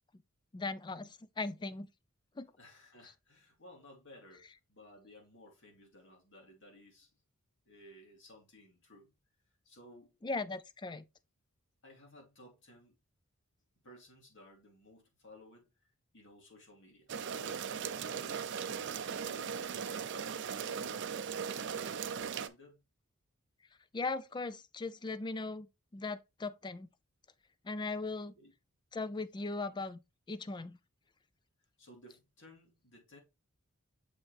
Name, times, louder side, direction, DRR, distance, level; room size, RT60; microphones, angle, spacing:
voice 1, 0.5-1.9 2.4-2.5 10.2-11.0 23.9-26.9 27.6-28.3 28.9-30.0 30.3-30.8, left 3 dB, 20° left, 0.4 m, -38 dB
voice 2, 2.6-7.1 7.6-9.1 9.6-10.2 11.8-12.9 13.8-15.7 16.1-21.4 22.1-22.8 28.4-28.5 31.8-33.2, left 1 dB, 60° left, 2.6 m, -57 dB
sound 1, 17.1-22.5, right 7 dB, 55° right, 0.5 m, -38 dB
6.8 x 4.4 x 3.2 m
head